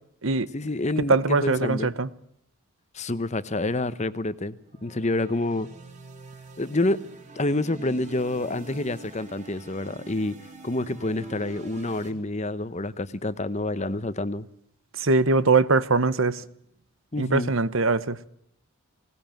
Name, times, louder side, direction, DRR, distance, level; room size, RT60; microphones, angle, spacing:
voice 1, 0.5-1.9 2.9-5.7 6.6-7.0 7.4-10.4 10.6-14.5 17.1-17.5, left 2 dB, 30° left, 0.9 m, -28 dB
voice 2, 1.1-2.1 15.0-16.4 17.2-18.2, right 3 dB, 60° right, 1.0 m, -22 dB
sound 1, 4.6-12.1, right 3 dB, 35° right, 3.9 m, -45 dB
20.0 x 19.0 x 9.1 m
head